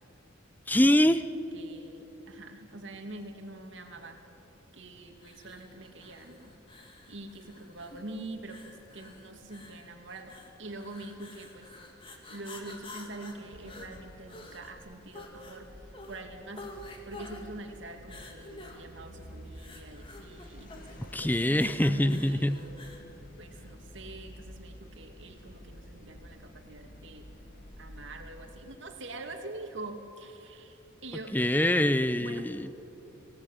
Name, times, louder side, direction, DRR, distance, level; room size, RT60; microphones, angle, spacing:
voice 1, 0.7-1.3 21.1-22.6 31.3-32.7, left 1 dB, 10° left, 13 dB, 0.6 m, -24 dB
voice 2, 1.5-4.2 4.7-6.5 7.1-11.7 12.3-15.7 16.1-16.6 17.0-22.9 23.4-27.3 27.8-31.3 32.2-32.5, right 2 dB, 65° right, 4 dB, 2.6 m, -45 dB
sound 1, 5.2-23.1, left 2 dB, 25° left, 2.4 m, -49 dB
sound 2, 13.5-29.0, equal, 45° left, 1.7 m, -51 dB
26.0 x 17.5 x 9.3 m, 3.0 s
head